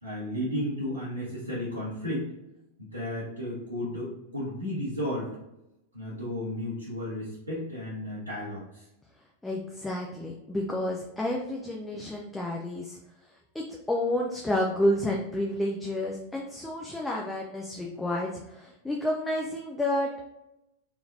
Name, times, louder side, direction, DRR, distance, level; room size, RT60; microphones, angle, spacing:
voice 1, 0.0-2.2 2.8-5.3 5.9-8.9, left 1 dB, 80° right, -10 dB, 1.4 m, -33 dB
voice 2, 9.4-13.0 13.5-20.3, left 1 dB, 5° left, -1 dB, 0.5 m, -30 dB
3.7 x 3.4 x 2.6 m, 0.90 s
figure-of-eight pair, 90°, 0 cm